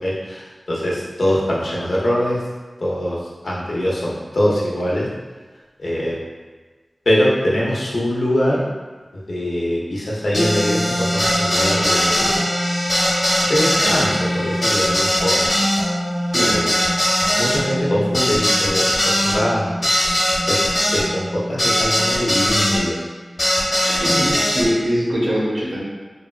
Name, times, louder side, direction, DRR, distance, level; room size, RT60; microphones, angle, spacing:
voice 1, 0.0-2.4 2.8-5.1 5.8-6.2 7.1-8.6 9.1-12.3 13.4-15.6 16.4-16.8 17.4-20.6 20.9-23.0 24.1-24.3, equal, 75° left, -5 dB, 0.6 m, -23 dB
sound 1, 10.3-22.8 23.4-24.7, equal, 45° left, 1.0 m, -20 dB
voice 2, 16.3-16.7 23.8-25.8, equal, 60° right, -5 dB, 0.8 m, -22 dB
3.3 x 2.2 x 2.3 m, 1.3 s
wide cardioid pair, 85°, 0 cm